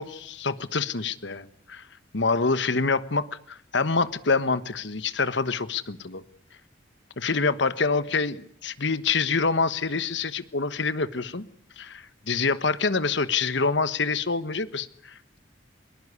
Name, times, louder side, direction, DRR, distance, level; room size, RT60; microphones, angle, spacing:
voice 1, 0.0-1.8 2.1-6.2 7.2-11.5 11.8-15.4, left 4 dB, 65° left, 14 dB, 1.2 m, -26 dB
21.5 x 21.5 x 9.7 m, 0.66 s
head